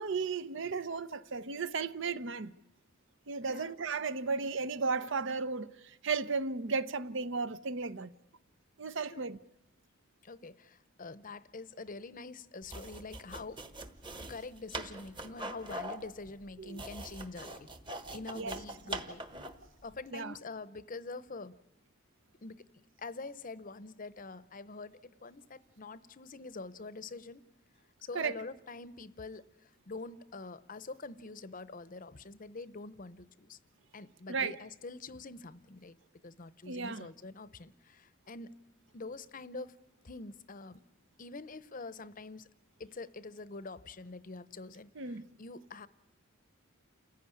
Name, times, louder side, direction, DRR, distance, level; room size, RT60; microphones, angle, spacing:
voice 1, 0.0-2.5 3.3-8.1 8.8-9.4 16.6-16.8 18.3-18.6 20.1-20.3 28.1-28.3 34.3-34.6 36.7-37.1 45.0-45.3, right 4 dB, 60° right, 0.8 m, -35 dB
voice 2, 10.2-13.6 14.2-17.7 18.1-19.2 19.8-21.6 22.4-22.7 23.0-27.4 28.0-33.6 33.9-36.0 36.2-38.6 38.9-39.7 40.0-40.8 41.2-42.5 42.8-45.9, left 3 dB, 40° left, 0.8 m, -45 dB
sound 1, 12.6-19.7, right 1 dB, 25° right, 1.3 m, -43 dB
29.0 x 15.5 x 9.8 m
head